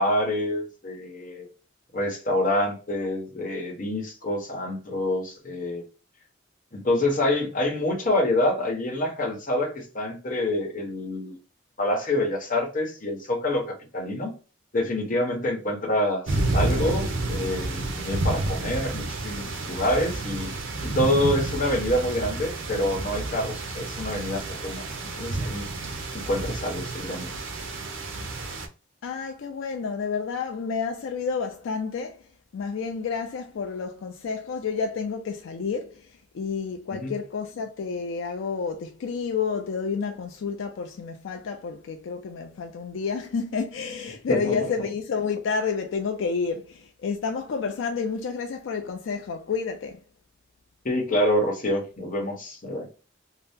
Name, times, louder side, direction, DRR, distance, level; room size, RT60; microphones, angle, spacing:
voice 1, 0.0-1.5 1.9-5.8 6.7-11.4 11.8-14.3 14.7-20.5 20.8-24.9 25.1-25.7 26.1-27.3 36.9-37.1 44.3-44.6 50.8-52.9, left 1 dB, 40° left, 0.9 m, -27 dB
sound 1, 16.3-28.7, right 2 dB, 80° right, 0.6 m, -30 dB
voice 2, 29.0-50.0, left 5 dB, 75° left, 0.4 m, -30 dB
2.7 x 2.0 x 3.4 m
head